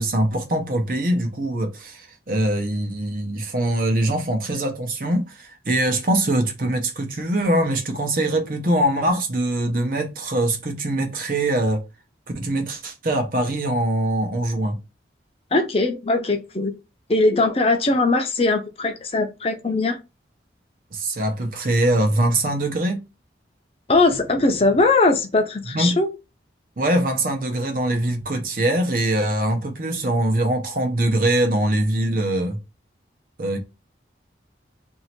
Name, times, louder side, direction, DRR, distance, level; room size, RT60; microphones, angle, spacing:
voice 1, 0.0-11.8 12.3-14.8 20.9-23.0 25.7-26.0 26.8-32.6 33.4-33.6, right 1 dB, 50° right, 0.9 m, -23 dB
voice 2, 15.5-16.7 17.1-20.0 23.9-26.1, left 3 dB, 35° left, 0.6 m, -20 dB
3.0 x 2.8 x 4.3 m
head